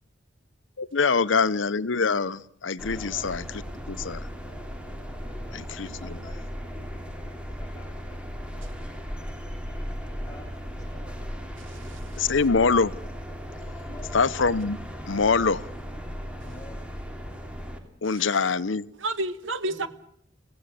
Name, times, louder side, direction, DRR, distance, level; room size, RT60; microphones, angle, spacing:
voice 1, 0.8-3.5 3.9-4.2 5.8-6.2 12.2-12.9 14.1-14.8 15.1-15.7 18.0-18.9, left 4 dB, 75° left, 0.9 m, -24 dB
sound 1, 2.8-17.8, equal, 5° right, 3.1 m, -37 dB
voice 2, 2.9-3.4 5.2-5.6 6.0-6.7 7.2-8.3 8.6-8.8 10.2-11.4 11.7-11.9 13.8-14.2 16.4-16.9 19.7-19.9, left 2 dB, 20° left, 6.8 m, -49 dB
voice 3, 11.6-12.2 18.1-18.3 19.0-19.9, right 2 dB, 85° right, 1.5 m, -32 dB
26.0 x 17.0 x 8.3 m
head